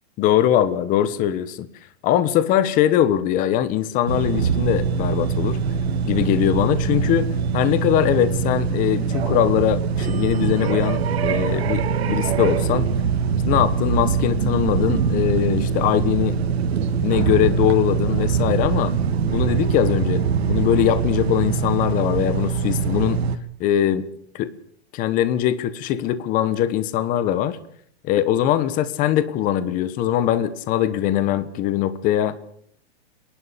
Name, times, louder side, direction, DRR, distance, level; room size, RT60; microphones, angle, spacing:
voice 1, 0.2-1.7 2.0-5.6 6.0-7.3 7.5-12.9 13.5-16.4 17.0-18.9 19.3-23.2 23.6-24.0 24.3-24.5 24.9-27.6 28.0-32.4, left 11 dB, 25° left, 14 dB, 1.2 m, -21 dB
sound 1, 4.1-23.4, right 6 dB, 70° right, 2.1 m, -23 dB
27.0 x 12.0 x 8.5 m, 0.65 s
hypercardioid pair, 155°, 32 cm